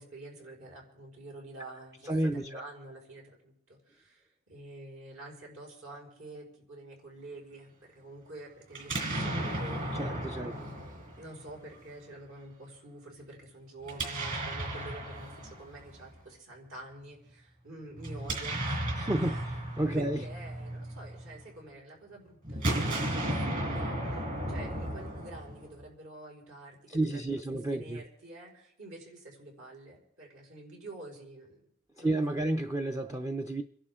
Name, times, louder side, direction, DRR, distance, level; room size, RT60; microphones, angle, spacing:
voice 1, 0.0-19.4 19.9-31.7 32.0-32.4, right 1 dB, 65° right, 5.1 m, -48 dB
voice 2, 2.0-2.6 9.9-10.5 19.0-20.2 26.9-28.0 32.0-33.6, right 1 dB, 15° right, 0.5 m, -31 dB
Explosion, 8.7-11.8 13.8-16.1 18.0-21.4 22.4-25.8, right 1 dB, 40° right, 4.8 m, -34 dB
28.0 x 11.5 x 3.7 m
head